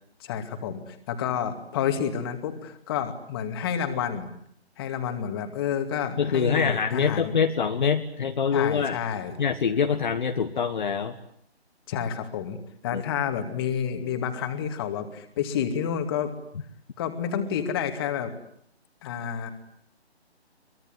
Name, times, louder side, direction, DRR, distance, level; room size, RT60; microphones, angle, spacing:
voice 1, 0.2-4.3 4.8-7.3 8.5-9.3 11.9-12.6 12.8-16.3 17.0-18.3 19.0-19.5, left 8 dB, 20° left, 6 dB, 2.5 m, -29 dB
voice 2, 6.2-9.0 9.4-11.1 12.9-13.0, left 6 dB, 45° left, 5 dB, 1.7 m, -25 dB
24.0 x 22.0 x 9.8 m, 0.67 s
figure-of-eight pair, 155°, 33 cm